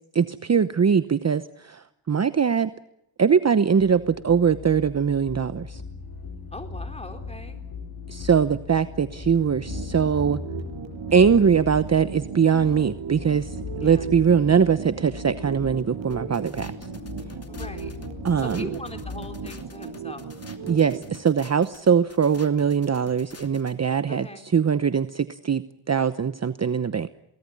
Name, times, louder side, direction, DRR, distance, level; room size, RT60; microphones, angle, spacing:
voice 1, 0.1-2.7 3.2-5.8 8.1-10.4 11.1-16.7 18.2-18.7 20.7-25.6 25.9-27.1, right 7 dB, 35° right, 12 dB, 0.9 m, -22 dB
sound 1, 3.8-19.5, left 5 dB, 50° left, 6.1 m, -39 dB
voice 2, 6.5-7.6 13.8-14.0 17.5-17.9 18.4-20.3 24.1-24.5, left 2 dB, 15° left, 6 dB, 4.0 m, -40 dB
sound 2, 9.6-21.2, right 7 dB, 70° right, 6.7 m, -37 dB
sound 3, 16.1-23.7, left 4 dB, 30° left, 2.7 m, -47 dB
23.5 x 18.5 x 9.9 m, 0.82 s
cardioid pair, 85°, 47 cm